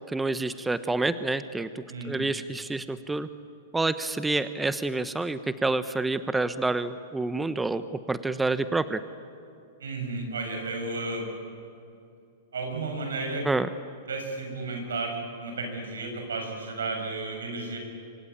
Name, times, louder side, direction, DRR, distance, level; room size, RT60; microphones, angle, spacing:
voice 1, 0.1-3.3 3.7-9.0 13.4-13.7, right 3 dB, 10° right, 12 dB, 1.0 m, -28 dB
voice 2, 1.9-2.3 9.8-11.3 12.5-13.5 14.1-17.8, right 3 dB, 85° right, 3 dB, 7.2 m, -33 dB
25.5 x 25.5 x 8.7 m, 2.5 s
hypercardioid pair, 115°, 0 cm